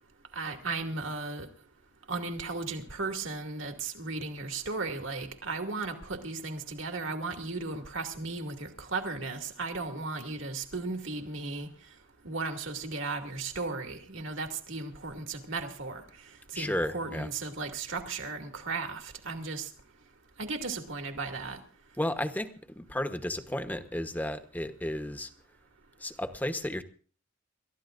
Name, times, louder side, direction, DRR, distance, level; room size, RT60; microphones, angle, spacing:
voice 1, 0.3-1.5 2.1-11.7 12.2-16.0 16.5-19.7 20.4-21.6, right 3 dB, 65° right, 4 dB, 2.4 m, -35 dB
voice 2, 16.5-17.3 22.0-25.3 26.0-26.8, left 1 dB, 10° left, 9 dB, 1.0 m, -33 dB
29.0 x 14.0 x 2.6 m, 0.41 s
head